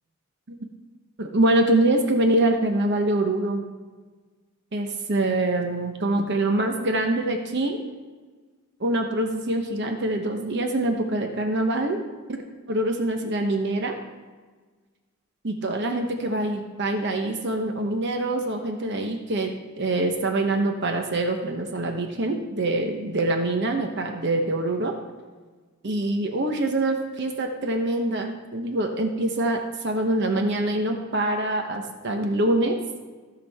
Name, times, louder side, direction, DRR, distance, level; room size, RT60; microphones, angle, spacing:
voice 1, 1.2-3.6 4.7-7.8 8.8-12.0 12.7-14.0 15.4-19.5 19.8-24.9 25.8-32.8, right 2 dB, 55° right, 4 dB, 0.9 m, -24 dB
15.5 x 6.1 x 3.5 m, 1.4 s
head